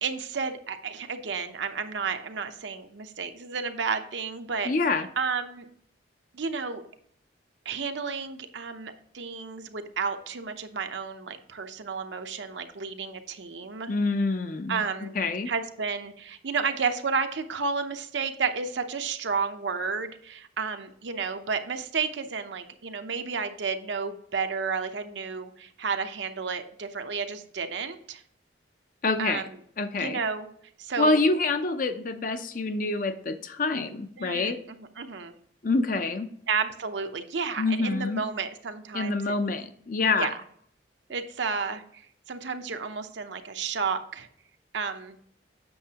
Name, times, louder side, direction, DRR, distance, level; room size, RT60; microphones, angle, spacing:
voice 1, 0.0-4.7 5.2-5.7 6.3-6.8 7.6-13.9 14.7-15.1 15.5-28.2 29.2-29.5 30.0-30.5 30.8-31.2 34.2-35.3 36.5-39.3 40.2-40.4 41.1-42.0 42.3-44.3 44.7-45.2, right 5 dB, 75° right, 7 dB, 0.7 m, -32 dB
voice 2, 4.6-5.1 13.9-14.8 15.1-15.5 29.0-29.4 29.8-30.2 31.0-34.6 35.6-36.3 37.6-38.2 38.9-40.3, left 3 dB, 45° left, 9 dB, 0.6 m, -26 dB
7.9 x 6.5 x 2.9 m, 0.66 s
head